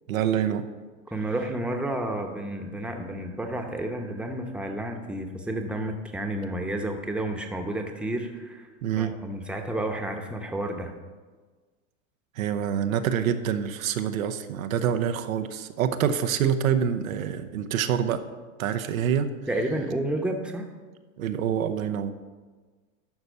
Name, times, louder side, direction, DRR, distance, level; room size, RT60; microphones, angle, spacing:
voice 1, 0.1-0.7 8.8-9.1 12.4-18.2 18.6-19.3 21.2-22.1, right 8 dB, 90° right, 9 dB, 0.8 m, -26 dB
voice 2, 1.1-8.7 9.0-10.9 19.5-20.7, right 1 dB, 5° right, 4 dB, 0.9 m, -31 dB
12.0 x 4.2 x 6.7 m, 1.4 s
hypercardioid pair, 115°, 40 cm